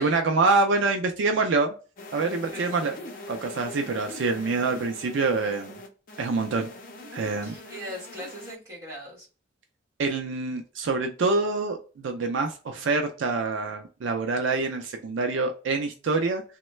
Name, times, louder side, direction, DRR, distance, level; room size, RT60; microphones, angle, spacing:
voice 1, 0.0-1.7 2.1-2.9 3.3-5.8 6.2-6.7 7.1-7.6 10.0-16.4, right 3 dB, 70° right, 5 dB, 0.4 m, -26 dB
sound 1, 2.0-8.5, left 2 dB, 45° left, 0.6 m, -43 dB
voice 2, 2.5-3.1 7.4-9.3, equal, 15° right, -5 dB, 1.4 m, -40 dB
3.0 x 2.1 x 3.0 m, 0.35 s
head